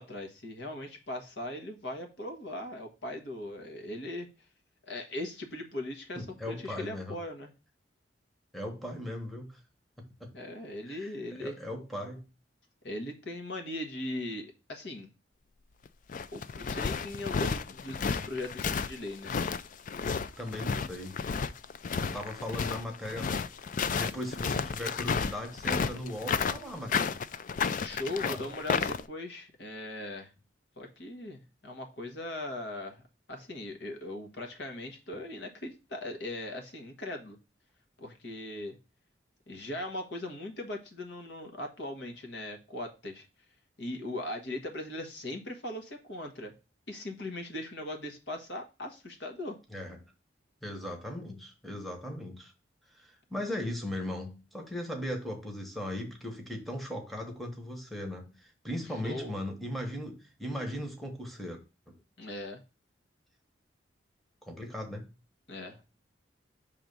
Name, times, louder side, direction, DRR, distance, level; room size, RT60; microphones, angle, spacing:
voice 1, 0.0-4.3 4.8-7.5 10.3-11.6 12.8-15.1 16.3-19.3 27.8-30.3 30.8-33.0 33.3-37.4 38.0-38.8 39.5-43.3 43.8-46.5 46.9-49.6 59.0-59.4 62.2-62.6 65.5-65.8, left 1 dB, 70° left, 1.4 m, -39 dB
voice 2, 6.2-7.2 8.5-9.6 10.0-10.3 10.9-12.3 20.4-21.2 22.0-23.5 23.9-27.2 28.3-28.5 49.7-50.0 50.6-52.5 52.9-61.6 61.9-62.0 64.4-65.1, left 1 dB, ahead, 1.1 m, -38 dB
sound 1, 15.9-29.0, left 5 dB, 45° left, 0.4 m, -32 dB
6.0 x 3.6 x 5.2 m
head